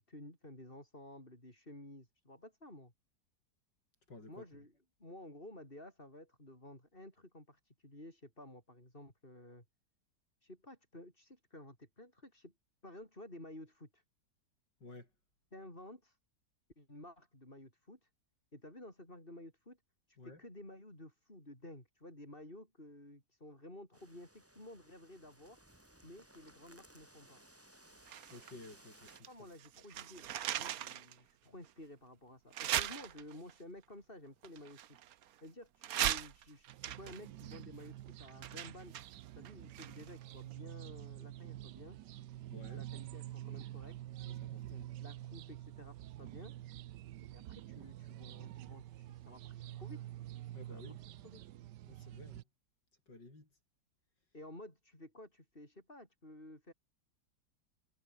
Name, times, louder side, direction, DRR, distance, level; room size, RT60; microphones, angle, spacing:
voice 1, 0.0-2.9 4.3-4.7 5.0-9.6 10.4-12.5 12.8-14.0 15.5-16.2 16.8-18.1 18.5-19.8 20.1-25.6 26.0-27.4 29.3-35.0 35.4-39.0 39.4-42.0 42.7-44.0 45.0-46.5 47.3-50.0 50.7-50.8 51.2-51.4 54.3-56.7, left 1 dB, 30° left, 8.3 m, -53 dB
voice 2, 4.1-4.5 14.8-15.1 20.2-20.4 28.3-29.3 42.5-42.8 44.2-44.9 50.5-51.0 51.9-52.4 53.1-53.5, left 2 dB, 85° left, 7.7 m, -53 dB
sound 1, 23.9-29.2, right 1 dB, 10° right, 2.6 m, -62 dB
sound 2, 28.1-29.3 29.6-31.1 31.6-31.7 32.5-33.5 34.4-35.4 35.8-40.2 40.5-40.6, right 11 dB, 60° right, 1.2 m, -39 dB
sound 3, 36.7-52.4, right 14 dB, 80° right, 1.3 m, -48 dB
omnidirectional pair, 1.9 m